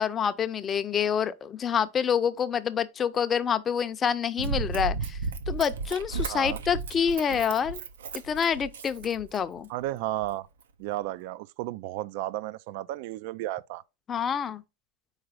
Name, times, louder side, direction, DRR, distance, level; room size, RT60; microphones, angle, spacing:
voice 1, 0.0-5.2 5.5-7.8 8.2-9.7 14.1-14.6, left 7 dB, 25° left, 0.5 m, -27 dB
Run, 4.4-9.7 10.2-10.3, right 4 dB, 90° right, 0.7 m, -34 dB
voice 2, 6.3-6.6 9.7-10.5 10.8-13.8, right 15 dB, 60° right, 0.3 m, -33 dB
4.8 x 4.0 x 4.9 m
supercardioid pair, 130°, 0 cm